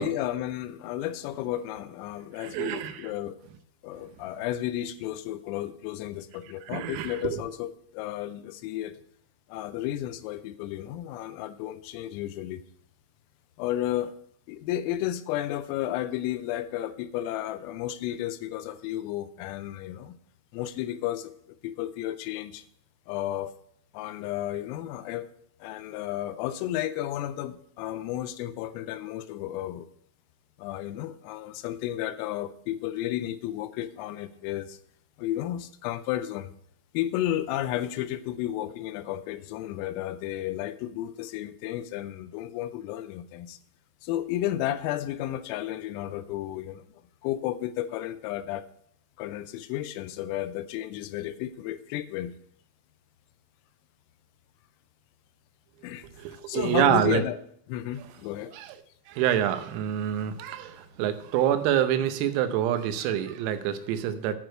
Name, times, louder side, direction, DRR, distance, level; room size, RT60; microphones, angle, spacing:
voice 1, 0.0-3.4 3.8-9.0 9.5-12.6 13.6-14.1 14.5-20.2 20.5-22.6 23.1-23.5 23.9-25.3 25.6-29.9 30.6-34.8 35.2-36.5 36.9-43.6 44.0-46.8 47.2-48.7 49.2-52.4 55.8-56.1 56.5-57.4 57.7-58.6, left 13 dB, 90° left, 12 dB, 3.3 m, -32 dB
voice 2, 2.4-3.1 6.7-7.4 56.2-57.2 58.5-58.7 59.1-64.4, right 10 dB, 90° right, 9 dB, 3.5 m, -27 dB
9.8 x 4.6 x 7.6 m, 0.67 s
omnidirectional pair, 5.9 m